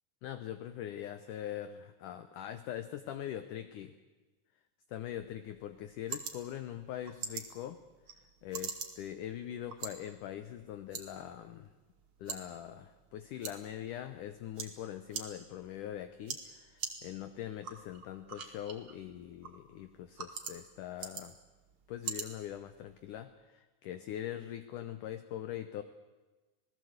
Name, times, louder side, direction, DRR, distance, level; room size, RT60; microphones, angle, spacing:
voice 1, 0.2-3.9 4.9-7.8 8.2-11.7 12.2-21.4 21.9-25.8, left 11 dB, 75° left, 10 dB, 1.9 m, -42 dB
sound 1, 5.2-23.2, right 6 dB, 40° right, 2.1 m, -46 dB
27.0 x 18.0 x 8.0 m, 1.2 s
omnidirectional pair, 4.7 m